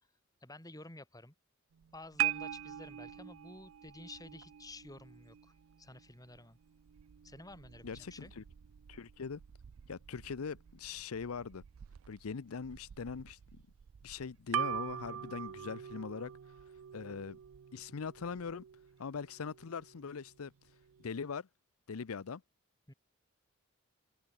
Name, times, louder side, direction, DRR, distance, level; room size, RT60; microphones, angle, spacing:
voice 1, 0.4-1.3 1.9-5.5 5.8-6.6 7.2-8.3 22.9-23.0, left 2 dB, 15° left, 4.4 m, -51 dB
sound 1, 1.7-21.4, right 11 dB, 75° right, 0.4 m, -44 dB
voice 2, 7.8-8.4 8.9-9.4 9.9-11.6 12.1-13.6 14.0-16.3 16.9-17.4 17.7-18.6 19.0-20.5 21.0-21.5 21.9-22.4, left 5 dB, 90° left, 0.6 m, -41 dB
head